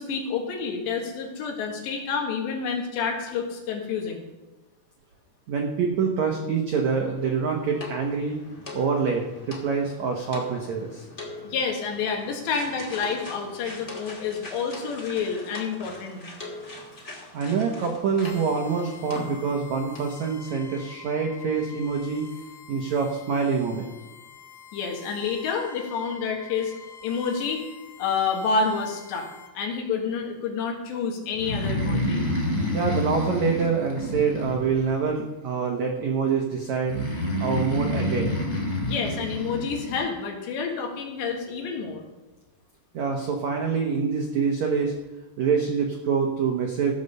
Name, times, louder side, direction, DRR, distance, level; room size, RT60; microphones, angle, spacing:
voice 1, 0.0-4.3 11.4-16.3 24.7-26.7 27.0-27.6 28.0-29.3 29.6-32.2 38.8-42.1, left 5 dB, 80° left, 1 dB, 4.0 m, -29 dB
voice 2, 5.5-8.4 8.7-11.0 17.3-22.3 22.7-23.9 32.7-37.0 37.4-38.4 42.9-44.9 45.4-46.9, right 5 dB, 85° right, 1 dB, 1.6 m, -26 dB
sound 1, 7.2-19.7 19.9-20.2 20.8-20.9 21.1-21.2, left 2 dB, 40° left, 0.9 m, -41 dB
sound 2, 18.2-29.5, left 6 dB, 65° left, 3.1 m, -47 dB
Breathing, 31.3-35.1 36.9-40.0, left 1 dB, 20° left, 3.3 m, -28 dB
15.5 x 5.5 x 6.6 m, 1.1 s
omnidirectional pair, 5.0 m